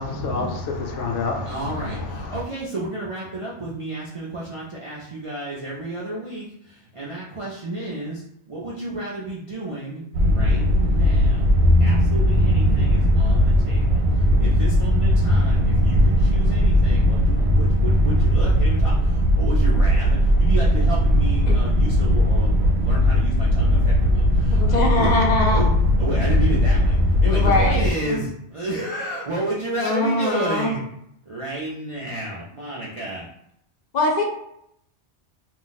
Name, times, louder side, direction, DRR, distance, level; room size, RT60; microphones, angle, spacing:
voice 1, 0.0-2.4, left 3 dB, 80° left, 2 dB, 0.9 m, -28 dB
voice 2, 1.5-11.5 11.8-25.1 25.5-25.7 26.0-30.8 31.3-33.3, right 2 dB, 55° right, -6 dB, 0.3 m, -31 dB
sound 1, 10.1-27.9, equal, 70° right, 0.8 m, -18 dB
voice 3, 24.5-25.6 27.2-28.2 29.8-30.7 33.9-34.2, left 2 dB, 55° left, 0 dB, 0.5 m, -22 dB
2.4 x 2.0 x 3.9 m, 0.73 s
omnidirectional pair, 1.2 m